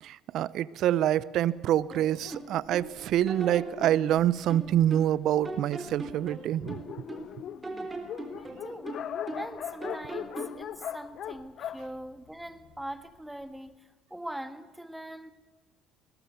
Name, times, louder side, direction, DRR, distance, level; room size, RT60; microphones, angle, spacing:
voice 1, 0.0-6.8, right 12 dB, 65° right, 20 dB, 0.6 m, -26 dB
sound 1, 1.9-2.9 3.3-5.2 5.4-7.3 7.6-9.5 9.8-10.6, right 3 dB, 25° right, 3.8 m, -39 dB
Dog, 2.2-5.2 5.9-6.0 6.2-6.3 6.5-12.9, left 10 dB, 60° left, 0.7 m, -40 dB
voice 2, 8.3-9.0 9.3-15.3, right 1 dB, 5° right, 10 dB, 1.6 m, -42 dB
21.0 x 20.0 x 7.0 m, 1.3 s
hypercardioid pair, 60°, 0 cm